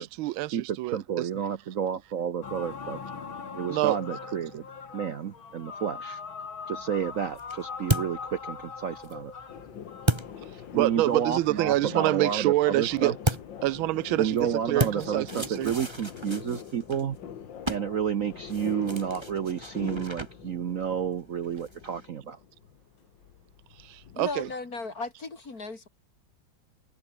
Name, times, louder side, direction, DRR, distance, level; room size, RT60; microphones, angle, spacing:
voice 1, 0.0-1.3 3.7-4.0 10.7-13.1 13.6-15.7 23.8-24.5, right 17 dB, 85° right, 1.4 m, -27 dB
voice 2, 0.5-3.0 3.5-4.6 4.9-6.2 6.7-9.3 10.5-13.1 14.2-17.2 17.7-22.4, right 8 dB, 55° right, 1.0 m, -30 dB
sound 1, 2.4-11.1, left 5 dB, 85° left, 3.6 m, -41 dB
sound 2, 6.8-11.2 13.2-22.1, right 1 dB, 10° right, 4.0 m, -35 dB
sound 3, 9.5-24.5, left 9 dB, 65° left, 2.1 m, -44 dB
voice 3, 24.1-25.9, left 3 dB, 45° left, 4.0 m, -36 dB
omnidirectional pair, 2.2 m